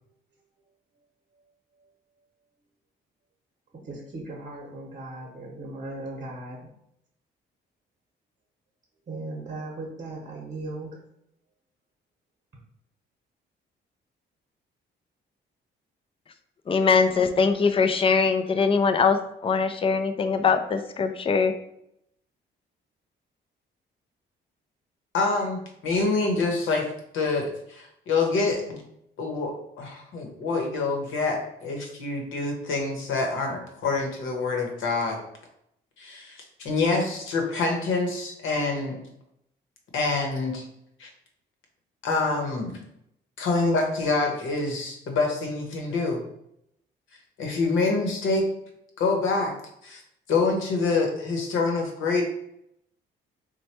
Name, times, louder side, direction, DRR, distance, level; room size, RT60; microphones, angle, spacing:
voice 1, 3.7-6.7 9.1-11.0, right 2 dB, 35° right, -3 dB, 0.9 m, -37 dB
voice 2, 16.7-19.2 19.4-21.5, left 5 dB, 30° left, 8 dB, 0.4 m, -22 dB
voice 3, 25.1-26.9 27.1-28.8 29.2-35.2 36.0-39.0 39.9-40.6 41.0-41.1 42.0-42.8 43.4-46.2 47.4-48.5 49.0-49.5 49.8-50.0 50.3-52.2, left 3 dB, 80° left, 2 dB, 0.9 m, -26 dB
3.2 x 2.2 x 4.2 m, 0.76 s
cardioid pair, 90°, 20 cm